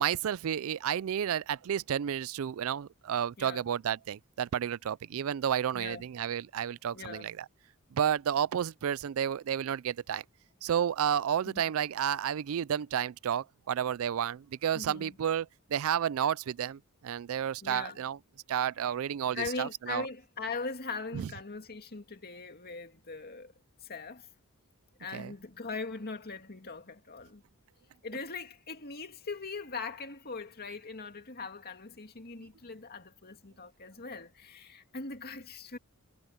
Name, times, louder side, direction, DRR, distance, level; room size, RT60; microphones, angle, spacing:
voice 1, 0.0-7.5 7.9-10.2 10.6-18.2 18.5-20.1 21.1-21.3 25.1-25.3, right 9 dB, 70° right, 0.4 m, -31 dB
voice 2, 6.9-7.3 11.5-11.7 14.7-15.2 17.6-18.0 19.3-23.5 23.8-24.3 25.0-27.4 28.0-35.8, left 4 dB, 45° left, 2.4 m, -40 dB
head